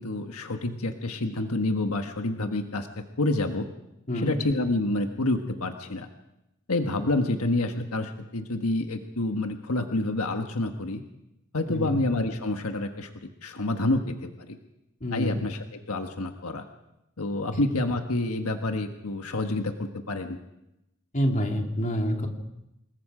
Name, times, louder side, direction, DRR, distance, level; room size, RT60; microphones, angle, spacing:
voice 1, 0.0-3.7 4.1-6.1 6.7-11.0 11.5-13.1 13.4-14.6 15.1-16.6 17.2-20.4, left 2 dB, 80° left, 6 dB, 1.5 m, -28 dB
voice 2, 11.7-12.0 15.0-15.4 17.5-17.6 21.1-22.3, equal, 35° left, 3 dB, 2.8 m, -27 dB
27.0 x 21.0 x 5.0 m, 0.87 s
head